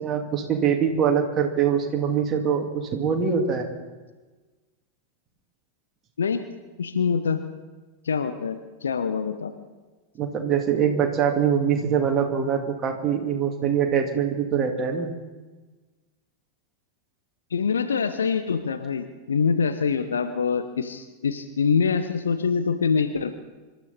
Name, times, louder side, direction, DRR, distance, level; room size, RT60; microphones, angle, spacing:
voice 1, 0.0-3.7 10.2-15.1, right 7 dB, 25° right, 2 dB, 2.5 m, -23 dB
voice 2, 6.8-7.4 8.0-9.5 17.5-23.3, left 6 dB, 70° left, 9 dB, 1.0 m, -25 dB
25.5 x 13.0 x 4.2 m, 1.3 s
figure-of-eight pair, 90°, 0 cm